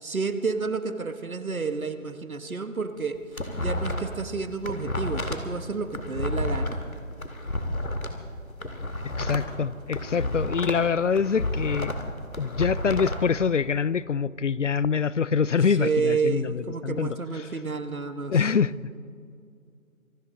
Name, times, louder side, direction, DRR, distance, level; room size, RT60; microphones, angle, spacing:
voice 1, 0.0-3.2 3.5-6.8 15.7-18.4, right 4 dB, 80° right, 10 dB, 1.4 m, -30 dB
sound 1, 3.0-4.2 4.5-8.1 8.5-10.9 11.1-13.2, left 1 dB, 85° left, 2.2 m, -30 dB
voice 2, 9.2-11.9 12.4-17.2 18.3-18.7, left 6 dB, 60° left, 20 dB, 0.5 m, -25 dB
25.5 x 13.5 x 3.9 m, 2.4 s
figure-of-eight pair, 160°, 41 cm